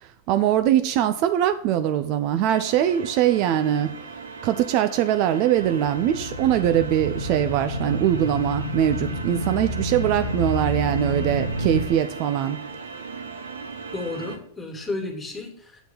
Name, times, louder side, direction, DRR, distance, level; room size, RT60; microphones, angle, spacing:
voice 1, 0.0-3.9 4.4-12.6, right 11 dB, 45° right, 10 dB, 0.5 m, -22 dB
sound 1, 2.5-14.4, right 4 dB, 70° right, 1.2 m, -38 dB
sound 2, 5.6-11.9, equal, 80° left, 0.9 m, -29 dB
voice 2, 13.9-15.8, left 2 dB, 10° left, 3 dB, 2.4 m, -32 dB
8.0 x 4.5 x 7.2 m, 0.63 s
figure-of-eight pair, 90°, 0 cm